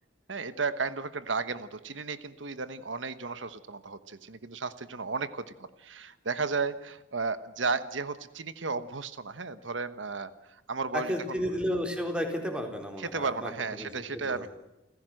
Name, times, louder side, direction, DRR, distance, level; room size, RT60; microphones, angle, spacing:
voice 1, 0.3-5.5 5.8-11.1 13.0-14.5, right 4 dB, 85° right, 13 dB, 1.2 m, -34 dB
voice 2, 10.9-14.5, equal, 5° right, 3 dB, 4.0 m, -33 dB
29.0 x 16.0 x 7.8 m, 0.96 s
head